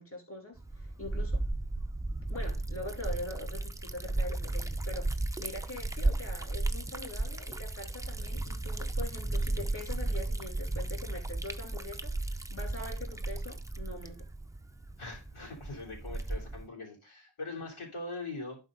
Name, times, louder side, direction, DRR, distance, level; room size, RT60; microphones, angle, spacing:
voice 1, 0.0-1.4 2.3-14.3, left 2 dB, 25° left, 2.8 m, -43 dB
Liquid, 0.6-16.7, right 2 dB, 5° right, 0.6 m, -34 dB
voice 2, 15.0-18.6, left 2 dB, 90° left, 3.5 m, -41 dB
11.5 x 4.8 x 3.9 m
wide cardioid pair, 85°, 48 cm